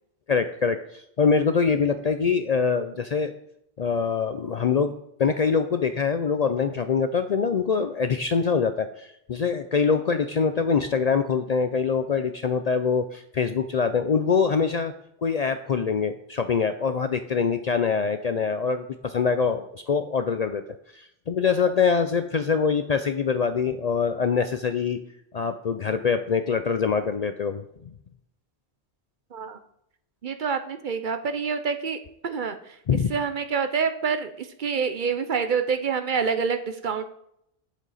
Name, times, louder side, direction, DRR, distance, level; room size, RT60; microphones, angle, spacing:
voice 1, 0.3-3.3 3.8-4.9 5.2-14.9 15.2-20.6 20.9-25.0 25.3-27.6 32.9-33.1, left 5 dB, 55° left, 9 dB, 0.5 m, -24 dB
voice 2, 30.2-32.8 33.1-37.0, right 6 dB, 55° right, 9 dB, 0.7 m, -27 dB
9.1 x 7.4 x 4.1 m, 0.75 s
omnidirectional pair, 1.1 m